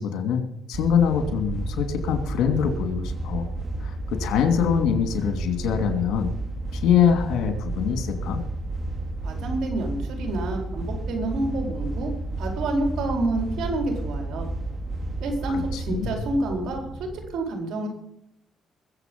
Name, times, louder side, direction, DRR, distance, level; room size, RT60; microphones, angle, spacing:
voice 1, 0.0-3.5 3.8-6.3 6.7-8.4 15.5-16.2, left 8 dB, 85° left, 6 dB, 2.7 m, -24 dB
sound 1, 0.7-17.3, right 2 dB, 45° right, 2.9 m, -32 dB
voice 2, 9.2-14.5 15.2-17.9, right 2 dB, 80° right, 3 dB, 4.5 m, -28 dB
21.5 x 7.9 x 5.4 m, 0.80 s
cardioid pair, 90°, 0 cm